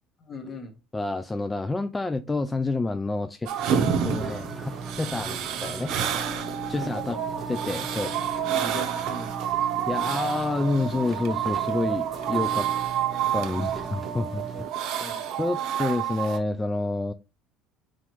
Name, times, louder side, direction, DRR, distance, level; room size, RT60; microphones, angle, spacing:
voice 1, 0.2-0.8 6.7-7.4 8.6-9.4 14.5-14.7 15.0-15.3, left 2 dB, 35° left, 1.1 m, -39 dB
voice 2, 0.9-3.5 4.0-6.0 6.7-7.2 7.5-8.1 9.9-12.7 13.3-14.4 15.4-17.1, left 2 dB, 15° left, 0.3 m, -28 dB
sound 1, 3.5-16.4, right 9 dB, 65° right, 0.7 m, -29 dB
sound 2, 3.6-14.6, right 3 dB, 15° right, 1.2 m, -38 dB
3.8 x 3.2 x 3.1 m
hypercardioid pair, 75°, 0 cm